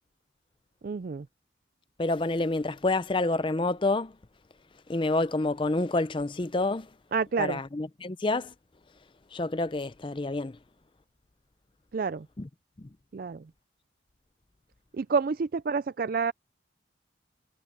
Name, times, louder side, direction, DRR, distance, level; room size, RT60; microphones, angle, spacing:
voice 1, 0.8-1.3 7.1-7.6 11.9-12.3 13.1-13.4 14.9-16.3, right 5 dB, 50° right, 0.4 m, -28 dB
voice 2, 2.0-4.1 4.9-6.9 7.4-8.5 9.3-10.6 12.4-12.5 12.8-12.9, left 2 dB, 25° left, 0.5 m, -28 dB
head